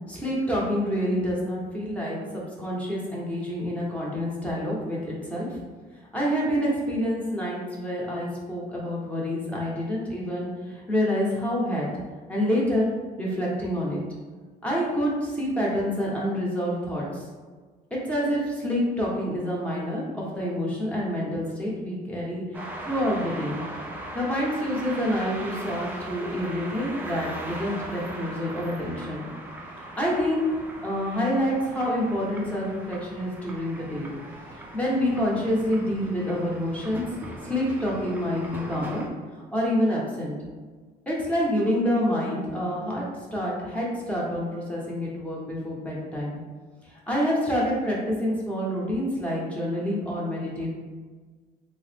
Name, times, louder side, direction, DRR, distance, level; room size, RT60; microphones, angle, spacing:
voice 1, 0.1-2.2 2.6-5.6 6.1-11.9 12.3-12.9 13.2-14.0 14.6-17.2 17.9-23.6 24.1-29.3 30.0-30.4 30.8-34.1 34.5-37.1 37.4-39.0 39.5-40.3 41.1-43.0 43.3-46.4 46.8-50.8, equal, 10° left, -5 dB, 0.9 m, -27 dB
sound 1, 22.5-39.1, right 1 dB, 10° right, 0.5 m, -39 dB
3.5 x 2.0 x 3.3 m, 1.4 s
cardioid pair, 110°, 17 cm